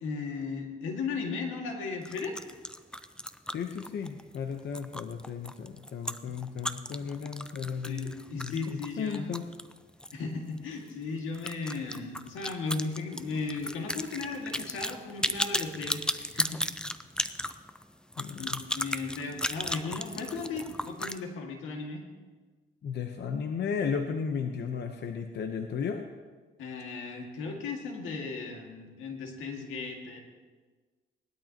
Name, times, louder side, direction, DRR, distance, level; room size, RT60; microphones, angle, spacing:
voice 1, 0.0-2.4 7.8-9.3 10.1-17.0 18.4-22.0 26.6-30.2, left 4 dB, 90° left, 2 dB, 2.1 m, -36 dB
sound 1, 2.0-10.2 10.5-10.6 10.9-11.0 11.3-21.2, left 1 dB, 5° left, 0.5 m, -35 dB
voice 2, 3.5-9.4 18.2-18.6 22.8-26.1, left 6 dB, 60° left, 5 dB, 0.9 m, -34 dB
18.5 x 12.0 x 2.9 m, 1.4 s
cardioid pair, 90°, 20 cm